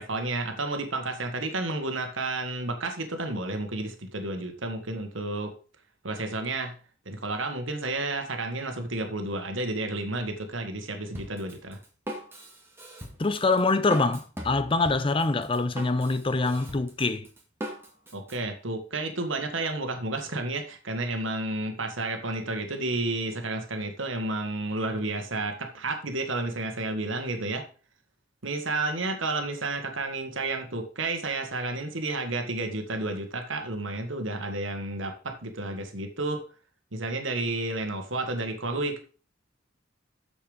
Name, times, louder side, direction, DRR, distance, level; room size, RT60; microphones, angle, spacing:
voice 1, 0.0-5.5 6.0-6.8 7.0-11.8 18.1-27.7 28.4-36.4 36.9-39.0, right 2 dB, 75° right, 1.6 m, -31 dB
Drum kit, 11.1-18.4, equal, 10° right, 2.0 m, -40 dB
voice 2, 13.2-17.3, left 3 dB, 25° left, 0.6 m, -25 dB
7.2 x 7.1 x 5.1 m
head